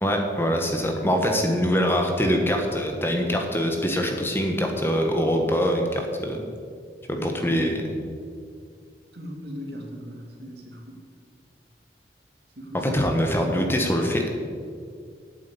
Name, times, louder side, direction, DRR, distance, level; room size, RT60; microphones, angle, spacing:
voice 1, 0.0-6.4 7.1-7.8 12.7-14.3, equal, 15° left, 3 dB, 1.2 m, -24 dB
voice 2, 7.1-7.8 9.1-11.0 12.6-13.2, equal, 70° right, 2 dB, 2.2 m, -38 dB
9.0 x 8.1 x 8.4 m, 2.1 s
head